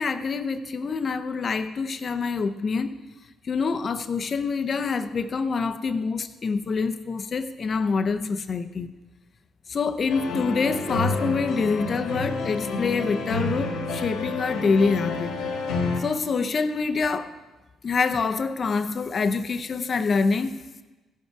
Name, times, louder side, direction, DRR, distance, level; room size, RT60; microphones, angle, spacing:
voice 1, 0.0-3.0 3.5-8.9 9.7-15.4 16.0-17.3 17.8-20.5, left 4 dB, 45° left, 9 dB, 0.6 m, -26 dB
sound 1, 10.1-16.0, left 3 dB, 90° left, 1.6 m, -29 dB
15.5 x 5.5 x 4.7 m, 1.2 s
cardioid pair, 90°, 0 cm